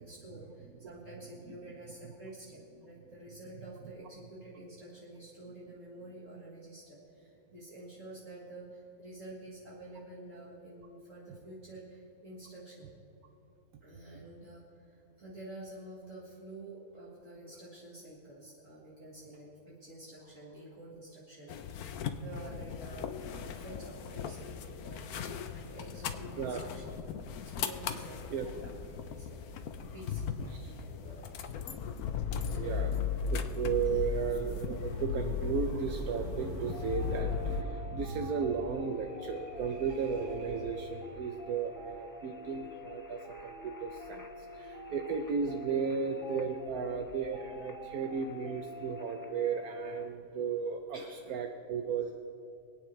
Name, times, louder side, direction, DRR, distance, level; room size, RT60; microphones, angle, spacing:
voice 1, 0.0-12.9 13.8-21.9 22.2-26.8 27.4-29.4 29.9-31.4 32.4-32.6 33.8-34.1 50.9-51.2 52.0-52.1, right 1 dB, 60° right, -6 dB, 2.1 m, -49 dB
sound 1, 21.5-37.6, left 6 dB, 80° left, 1.2 m, -37 dB
voice 2, 32.5-51.0 51.3-52.2, right 6 dB, 75° right, 4 dB, 1.2 m, -35 dB
sound 2, 36.7-50.1, left 2 dB, 30° left, 0.3 m, -47 dB
26.0 x 9.1 x 3.2 m, 2.9 s
omnidirectional pair, 1.6 m